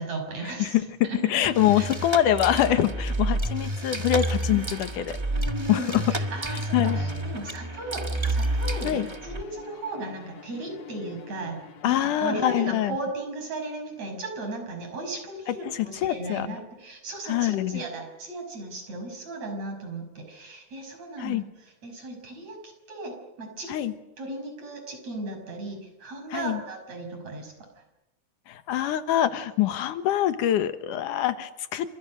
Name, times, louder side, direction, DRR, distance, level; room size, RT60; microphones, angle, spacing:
voice 1, 0.0-0.8 1.0-1.4 1.7-1.9 4.4-4.6 5.3-23.7 24.2-27.8, right 2 dB, 60° right, 4 dB, 7.1 m, -36 dB
voice 2, 0.6-5.2 5.7-6.0 6.7-7.0 8.8-9.1 11.8-12.9 15.5-16.5 17.3-17.8 21.2-21.4 23.7-23.9 26.3-26.6 28.5-31.9, left 12 dB, 90° left, 11 dB, 2.8 m, -25 dB
sound 1, 1.4-9.4, right 1 dB, 20° right, 0.7 m, -29 dB
Bowed string instrument, 6.8-12.8, left 7 dB, 65° left, 2.4 m, -46 dB
29.5 x 26.5 x 6.5 m, 0.93 s
omnidirectional pair, 3.5 m